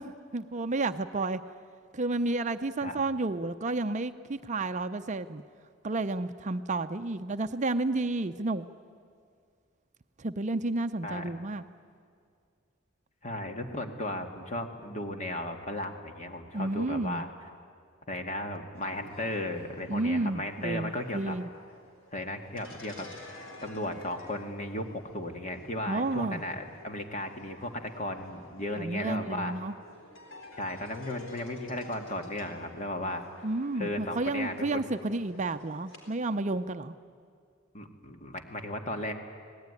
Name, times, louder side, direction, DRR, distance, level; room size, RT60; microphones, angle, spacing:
voice 1, 0.0-1.4 1.9-5.4 5.8-8.7 10.2-11.6 16.5-17.2 19.9-21.5 25.9-26.4 28.8-29.7 33.4-36.9, right 2 dB, 35° right, 10 dB, 0.6 m, -31 dB
voice 2, 13.2-17.3 18.1-21.4 22.1-23.1 23.6-29.5 30.6-33.2 33.8-34.9 37.7-39.1, left 1 dB, 35° left, 5 dB, 2.1 m, -35 dB
sound 1, 18.7-36.1, left 2 dB, 70° left, 4.3 m, -51 dB
26.0 x 18.5 x 9.7 m, 2.2 s
head